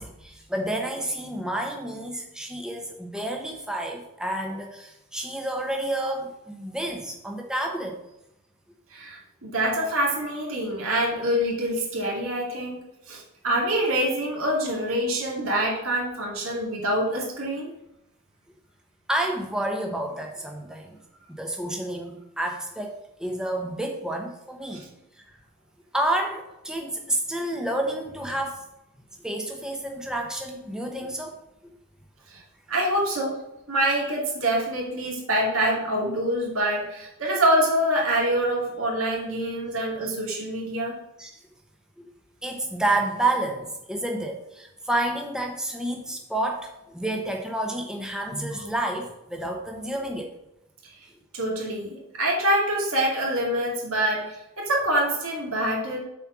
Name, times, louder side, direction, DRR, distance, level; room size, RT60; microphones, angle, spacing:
voice 1, 0.0-8.0 19.1-21.0 21.3-24.9 25.9-28.6 29.2-31.3 31.6-31.7 41.2-41.3 42.0-42.1 42.4-50.3, right 1 dB, 5° right, 2 dB, 1.0 m, -29 dB
voice 2, 8.9-12.8 13.1-17.7 24.7-24.9 32.3-32.4 32.7-41.0 50.8-50.9 51.3-56.0, right 1 dB, 70° right, -2 dB, 2.4 m, -25 dB
7.3 x 4.4 x 6.2 m, 0.88 s
head